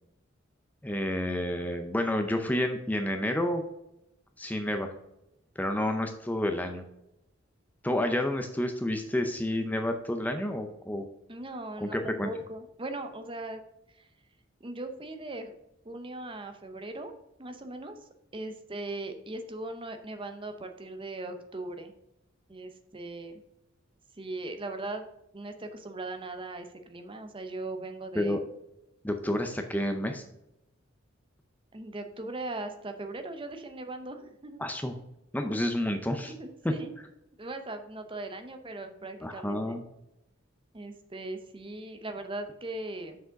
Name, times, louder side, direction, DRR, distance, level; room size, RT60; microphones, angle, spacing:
voice 1, 0.8-3.6 4.4-4.9 5.6-6.8 7.8-11.0 11.8-12.3 28.1-28.4 29.0-30.2 34.6-34.9 35.3-36.3 36.6-36.7 39.2-39.8, left 1 dB, 10° left, 6 dB, 0.5 m, -29 dB
voice 2, 11.3-13.6 13.9-14.1 14.6-15.5 15.8-17.1 17.4-18.0 18.3-21.9 22.5-23.3 24.2-25.1 25.3-28.4 31.7-34.6 36.3-36.9 37.4-39.8 40.7-43.2, right 2 dB, 25° right, 7 dB, 0.7 m, -39 dB
6.4 x 4.9 x 5.2 m, 0.85 s
head